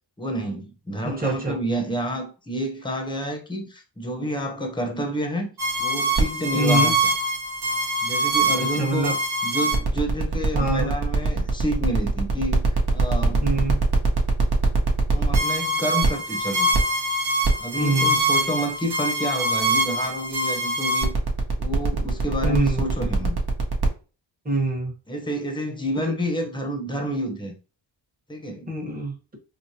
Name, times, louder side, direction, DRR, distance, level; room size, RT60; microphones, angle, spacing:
voice 1, 0.2-5.5 5.8-7.0 8.0-9.1 9.4-12.6 12.9-13.5 15.1-16.7 17.6-21.1 21.6-23.4 25.1-27.6 28.3-28.7, equal, 10° left, 0.9 m, -29 dB
voice 2, 1.0-1.6 6.5-7.0 8.5-9.2 10.5-10.9 13.4-13.8 17.8-18.2 22.4-22.8 24.4-24.9 26.0-26.1 28.7-29.2, right 2 dB, 20° right, 1.2 m, -25 dB
sound 1, 5.6-23.9, right 2 dB, 50° right, 1.0 m, -23 dB
5.0 x 2.0 x 2.8 m
wide cardioid pair, 85°, 47 cm